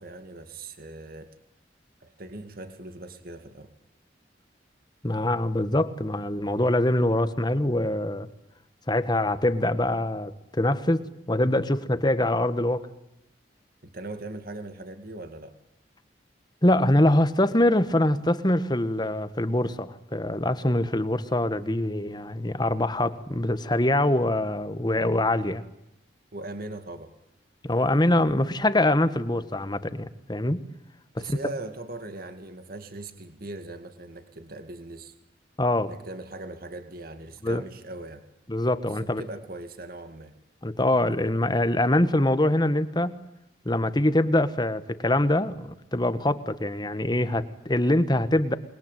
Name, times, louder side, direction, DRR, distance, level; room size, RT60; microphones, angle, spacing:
voice 1, 0.0-1.3 2.0-3.7 13.8-15.6 26.3-27.1 31.2-35.1 35.9-38.3 38.9-40.3, right 2 dB, 55° right, 8 dB, 2.3 m, -40 dB
voice 2, 5.0-8.3 8.9-11.0 11.3-12.9 16.6-25.6 27.6-30.6 31.2-31.4 35.6-35.9 37.4-37.6 38.5-39.2 40.6-43.1 43.6-48.6, left 1 dB, 25° left, 12 dB, 1.4 m, -24 dB
28.0 x 21.5 x 9.2 m, 0.86 s
head